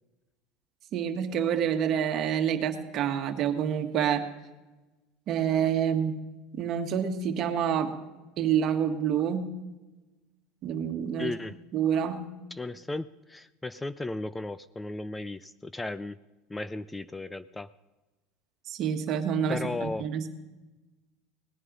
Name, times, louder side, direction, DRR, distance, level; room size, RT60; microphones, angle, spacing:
voice 1, 0.9-4.2 5.3-6.1 6.5-7.9 8.4-9.5 10.6-11.3 11.7-12.2 18.7-20.3, right 8 dB, 45° right, 5 dB, 1.6 m, -27 dB
voice 2, 11.2-11.6 12.5-16.2 16.5-17.7 19.5-20.0, left 2 dB, 10° left, 16 dB, 0.4 m, -35 dB
18.5 x 9.8 x 5.4 m, 1.1 s
supercardioid pair, 110°, 0 cm